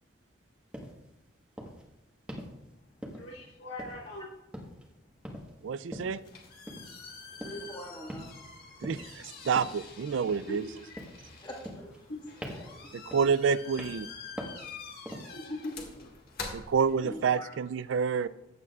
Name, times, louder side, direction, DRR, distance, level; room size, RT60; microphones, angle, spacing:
sound 1, 0.7-1.0 1.6-1.8 2.3-2.6 3.0-3.4 3.8-4.2 4.5-4.9 5.2-5.5 5.9-6.2 6.7-6.9 7.4-7.7 8.1-8.5 8.8-9.1 9.6-9.9 10.3-10.7 11.0-11.3 11.7-12.1 12.4-12.8 13.1-13.4 13.8-14.1 14.4-14.7 15.1-15.4, equal, 5° right, 1.3 m, -42 dB
voice 1, 3.1-4.3 10.5-10.6 12.1-12.2 15.3-16.1, left 1 dB, 80° left, 3.9 m, -40 dB
voice 2, 5.6-6.2 8.8-10.6 12.9-14.1 16.5-18.3, right 6 dB, 70° right, 0.4 m, -28 dB
sound 2, 6.0-17.4, left 4 dB, 50° left, 1.9 m, -47 dB
voice 3, 7.4-8.3 11.4-11.9 12.5-12.8 17.0-17.5, equal, 25° left, 1.7 m, -43 dB
14.5 x 9.4 x 2.4 m
head